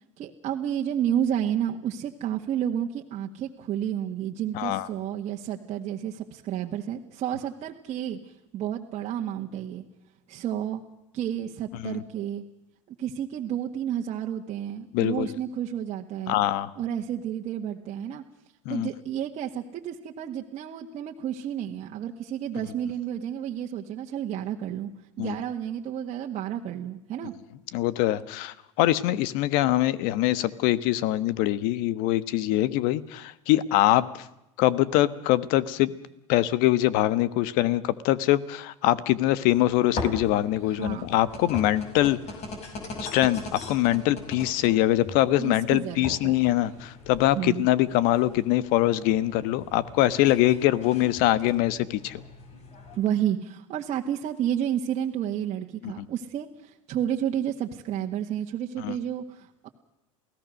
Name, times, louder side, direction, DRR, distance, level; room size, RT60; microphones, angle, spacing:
voice 1, 0.2-8.2 8.5-9.8 10.3-10.8 11.1-12.4 13.0-16.4 16.8-18.2 18.7-24.9 25.2-27.3 40.8-41.1 45.4-46.4 47.4-47.7 53.0-59.7, right 10 dB, 45° right, 0 dB, 1.8 m, -31 dB
voice 2, 4.5-4.9 11.8-12.0 14.9-15.3 16.3-16.7 18.6-18.9 25.2-25.3 27.7-34.3 34.6-36.0 36.3-42.2 43.1-52.2 55.8-56.1 58.8-59.0, left 15 dB, 65° left, 16 dB, 1.3 m, -23 dB
sound 1, 39.4-53.0, left 3 dB, 45° left, 6.0 m, -40 dB
28.5 x 17.0 x 6.5 m, 0.88 s
hypercardioid pair, 95°, 16 cm